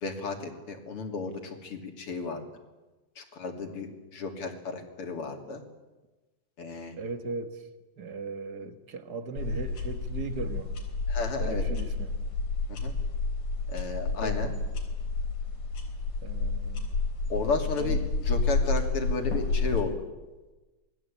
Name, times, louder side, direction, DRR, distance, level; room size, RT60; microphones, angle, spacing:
voice 1, 0.0-2.4 3.2-5.6 6.6-7.0 11.1-11.7 12.7-12.9 13.7-14.5 17.3-19.9, left 4 dB, 45° left, 5 dB, 3.5 m, -33 dB
voice 2, 7.0-7.6 8.0-10.7 11.4-12.2 14.2-14.4 16.2-17.0 17.8-18.0, right 4 dB, 40° right, 8 dB, 1.7 m, -38 dB
sound 1, 9.4-19.8, left 3 dB, 75° left, 5.3 m, -30 dB
27.5 x 20.0 x 8.6 m, 1.2 s
omnidirectional pair, 3.7 m